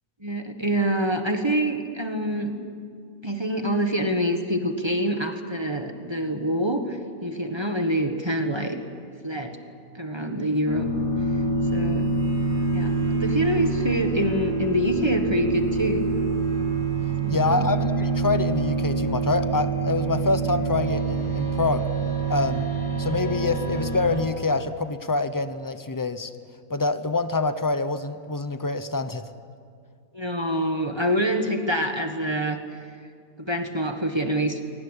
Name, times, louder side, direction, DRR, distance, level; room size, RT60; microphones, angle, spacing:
voice 1, 0.2-2.5 3.2-8.8 9.2-9.6 9.9-10.9 11.7-12.1 12.7-16.1 17.2-17.7 30.1-32.6 33.4-34.6, equal, 20° right, 5 dB, 1.5 m, -26 dB
sound 1, 10.7-24.2, right 3 dB, 60° left, 3.5 m, -26 dB
voice 2, 17.3-21.9 22.3-22.7 23.0-26.3 26.7-29.3, left 3 dB, 15° left, 11 dB, 0.7 m, -26 dB
23.5 x 18.5 x 10.0 m, 2.2 s
omnidirectional pair, 1.6 m